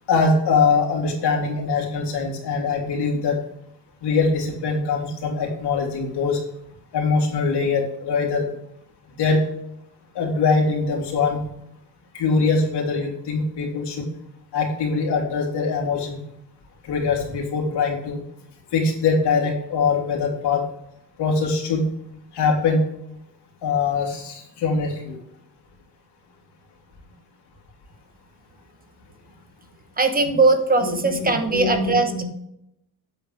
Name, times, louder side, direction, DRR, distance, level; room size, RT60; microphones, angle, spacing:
voice 1, 0.1-3.4 4.0-6.4 6.9-8.5 9.2-9.4 10.1-11.4 12.1-14.0 14.5-16.2 16.8-18.2 18.7-20.6 21.2-21.8 22.3-22.8 23.6-25.2 30.8-32.2, left 4 dB, 85° left, 0 dB, 3.1 m, -22 dB
voice 2, 30.0-32.2, right 3 dB, 20° right, 7 dB, 0.9 m, -20 dB
9.4 x 8.1 x 3.4 m, 0.78 s
cardioid pair, 165°, 40 cm